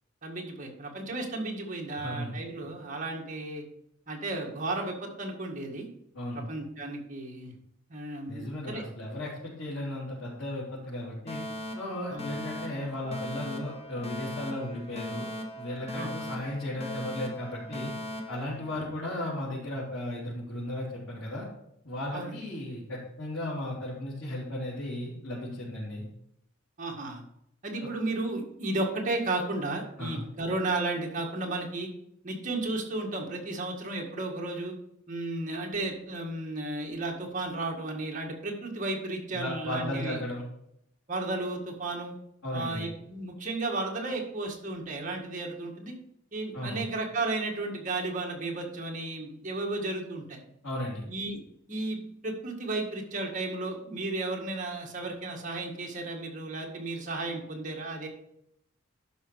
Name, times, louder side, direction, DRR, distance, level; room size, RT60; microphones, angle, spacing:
voice 1, 0.2-3.6 4.1-5.9 6.3-7.5 7.9-8.8 12.1-12.3 15.9-16.1 18.7-18.9 22.1-22.3 26.8-27.2 27.6-31.9 32.2-34.8 35.1-40.2 41.1-42.1 42.5-45.9 46.3-50.4 51.1-51.4 51.7-58.1, right 2 dB, 40° right, 0 dB, 1.9 m, -33 dB
voice 2, 2.0-2.3 6.1-6.4 8.3-11.4 11.7-15.3 15.6-17.9 18.3-21.5 21.8-26.0 27.8-27.9 30.0-30.2 39.3-40.4 42.4-42.9 46.5-46.8 50.6-51.0, left 1 dB, 85° left, -8 dB, 3.3 m, -35 dB
Alarm, 11.3-19.3, left 1 dB, 30° left, 1.1 m, -39 dB
12.0 x 5.3 x 4.8 m, 0.75 s
head